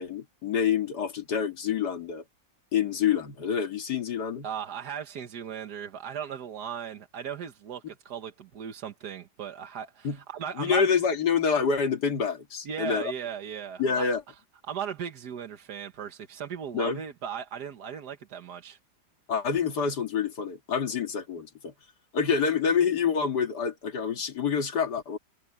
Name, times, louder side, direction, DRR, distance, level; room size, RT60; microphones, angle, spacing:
voice 1, 0.0-2.2 2.7-4.5 10.0-10.2 10.6-13.1 13.8-14.2 16.7-17.0 19.3-21.7 22.1-25.2, left 6 dB, 85° left, 2.4 m, -27 dB
voice 2, 4.4-10.9 12.6-14.1 14.6-18.8, right 8 dB, 80° right, 1.8 m, -37 dB
omnidirectional pair, 1.7 m